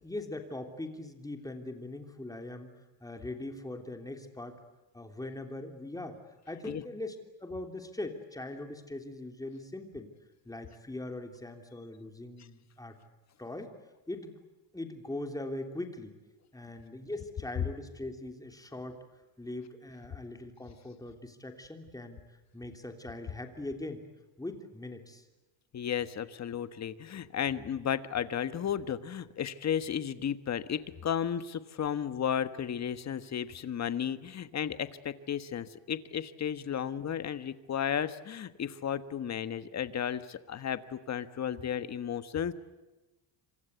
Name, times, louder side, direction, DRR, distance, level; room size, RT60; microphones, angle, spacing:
voice 1, 0.0-2.7 3.0-4.6 4.9-6.2 6.5-10.1 10.4-13.0 13.4-13.7 14.1-14.4 14.7-16.2 16.5-19.0 19.4-24.0 24.4-25.2, left 2 dB, 10° left, 5 dB, 3.2 m, -41 dB
voice 2, 25.7-42.5, left 8 dB, 35° left, 12 dB, 1.4 m, -34 dB
27.5 x 26.5 x 8.3 m, 1.1 s
cardioid pair, 145°, 47 cm